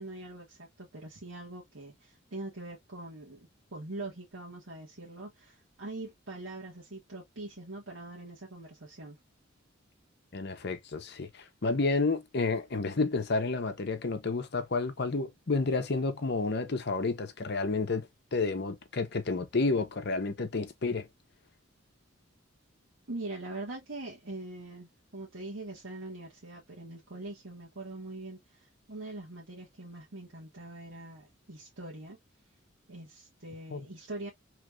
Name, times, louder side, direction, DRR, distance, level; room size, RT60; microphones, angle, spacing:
voice 1, 0.0-9.2 23.1-32.2 32.9-34.3, right 2 dB, 65° right, 1.2 m, -43 dB
voice 2, 10.3-21.1 33.7-33.9, left 3 dB, 55° left, 0.8 m, -30 dB
3.1 x 2.4 x 3.1 m
head